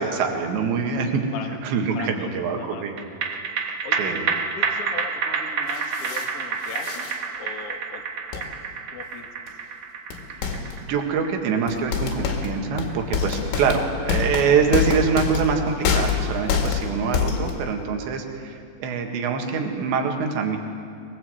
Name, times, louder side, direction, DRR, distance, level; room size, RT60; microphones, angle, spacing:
voice 1, 0.0-1.3 1.6-3.0 4.0-4.3 10.9-20.6, right 5 dB, 70° right, 3 dB, 3.9 m, -24 dB
voice 2, 1.9-3.2 3.8-7.1 7.3-8.0 8.3-8.6 8.9-9.6 18.1-18.2, left 6 dB, 65° left, 3 dB, 1.5 m, -39 dB
sound 1, 3.0-15.6 16.0-16.1, right 5 dB, 85° right, 1.4 m, -30 dB
sound 2, 5.7-6.3 6.6-7.2 8.3-8.5 9.5-9.6 10.1-10.8 11.7-17.7, left 6 dB, 80° left, 4.6 m, -26 dB
23.5 x 21.0 x 7.9 m, 2.3 s
omnidirectional pair, 5.5 m